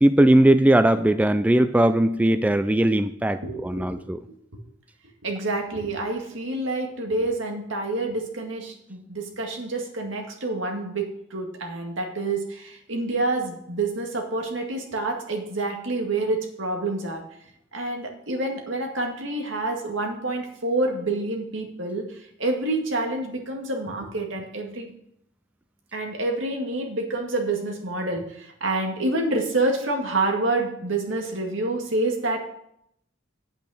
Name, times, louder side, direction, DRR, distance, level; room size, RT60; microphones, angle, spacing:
voice 1, 0.0-4.2, right 1 dB, 10° right, 11 dB, 0.3 m, -19 dB
voice 2, 3.4-4.3 5.2-11.0 11.3-17.2 17.7-22.0 22.4-24.9 25.9-32.5, right 2 dB, 80° right, 2 dB, 2.0 m, -28 dB
8.9 x 8.6 x 4.9 m, 0.73 s
head